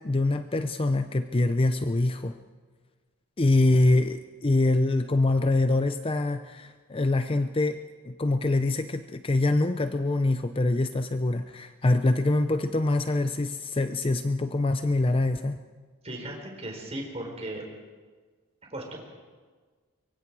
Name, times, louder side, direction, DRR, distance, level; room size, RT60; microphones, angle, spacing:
voice 1, 0.0-2.4 3.4-7.8 8.0-15.6, left 2 dB, 25° left, 9 dB, 0.5 m, -24 dB
voice 2, 16.0-17.6 18.7-19.0, right 1 dB, 30° right, 1 dB, 4.2 m, -36 dB
24.5 x 23.0 x 4.7 m, 1.5 s
head